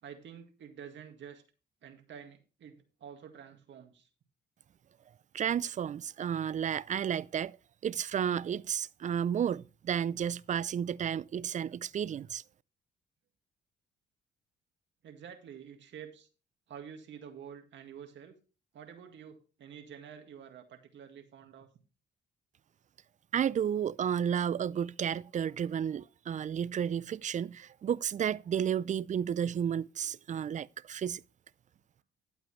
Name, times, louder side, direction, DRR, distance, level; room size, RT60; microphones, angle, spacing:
voice 1, 0.0-1.4 1.8-4.1 15.0-16.3 16.7-18.3 18.7-21.7, right 8 dB, 70° right, 2.0 m, -49 dB
voice 2, 5.3-7.6 7.8-12.4 23.3-31.2, right 8 dB, 40° right, 0.4 m, -32 dB
12.0 x 8.0 x 3.1 m
cardioid pair, 90°, 20 cm